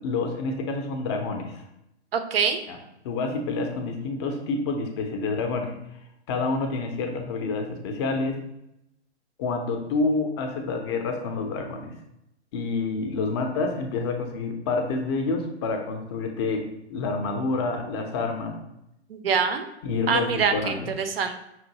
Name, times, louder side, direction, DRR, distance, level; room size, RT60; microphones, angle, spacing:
voice 1, 0.0-1.6 2.7-2.8 3.0-5.7 6.3-8.4 9.4-11.9 12.5-18.6 19.8-20.9, left 3 dB, 25° left, 4 dB, 0.5 m, -28 dB
voice 2, 2.1-2.6 19.1-19.7 20.1-21.4, right 6 dB, 55° right, 7 dB, 0.6 m, -25 dB
5.5 x 2.5 x 2.8 m, 0.83 s
figure-of-eight pair, 115°, 35 cm